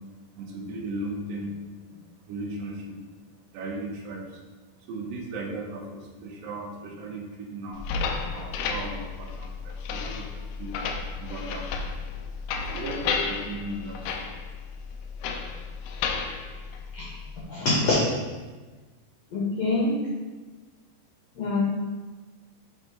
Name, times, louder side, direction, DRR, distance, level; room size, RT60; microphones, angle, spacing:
voice 1, 0.4-1.6 1.9-3.0 3.5-4.4 4.8-7.9 8.3-10.8 11.2-11.7 12.6-14.3, right 2 dB, 75° right, 0 dB, 2.4 m, -36 dB
sound 1, 7.7-17.4, left 5 dB, 85° left, 1.9 m, -33 dB
voice 2, 17.5-18.0 19.3-20.0 21.3-21.6, left 2 dB, 65° left, -6 dB, 1.8 m, -24 dB
8.1 x 3.7 x 3.8 m, 1.3 s
omnidirectional pair, 4.2 m